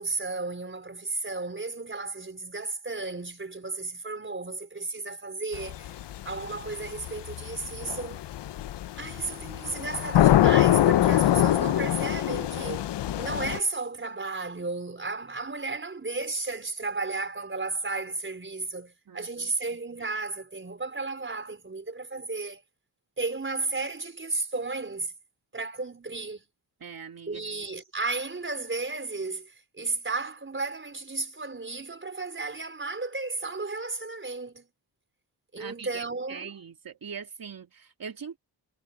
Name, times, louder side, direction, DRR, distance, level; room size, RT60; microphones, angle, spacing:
voice 1, 0.0-5.9 6.2-8.2 8.9-12.9 13.2-22.6 23.2-25.1 25.5-26.4 27.3-34.7 35.5-36.5, right 3 dB, 30° right, 4.7 m, -33 dB
sound 1, 5.5-13.6, left 12 dB, 75° left, 0.9 m, -24 dB
voice 2, 19.1-19.5 26.8-27.4 35.6-38.4, right 6 dB, 55° right, 3.1 m, -42 dB
cardioid pair, 65°, 42 cm